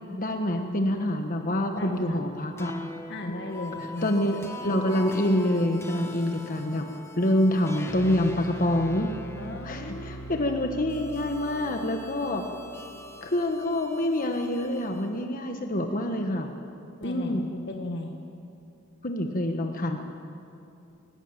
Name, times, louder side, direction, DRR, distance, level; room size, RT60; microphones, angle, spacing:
voice 1, 0.2-2.7 4.0-6.9 7.2-9.1 9.6-12.5 13.2-16.5 17.0-17.5 19.0-20.0, left 1 dB, 45° left, 4 dB, 1.2 m, -26 dB
voice 2, 1.7-2.3 3.1-4.2 9.3-10.2 17.0-18.1, left 1 dB, 60° left, 2 dB, 1.5 m, -36 dB
sound 1, 2.6-15.1, equal, 15° left, 1.4 m, -41 dB
19.5 x 17.5 x 9.0 m, 2.7 s
head